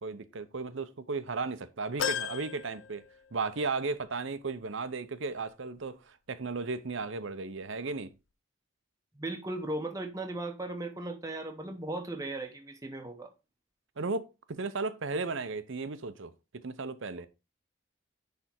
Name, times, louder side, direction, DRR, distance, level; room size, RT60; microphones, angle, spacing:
voice 1, 0.0-3.0 3.3-8.1 14.0-17.3, right 4 dB, 65° right, 0.7 m, -35 dB
sound 1, 2.0-3.6 4.1-4.2 5.4-5.5, left 8 dB, 65° left, 0.5 m, -36 dB
voice 2, 9.2-13.3, right 2 dB, 15° right, 0.8 m, -37 dB
10.0 x 3.5 x 4.4 m
head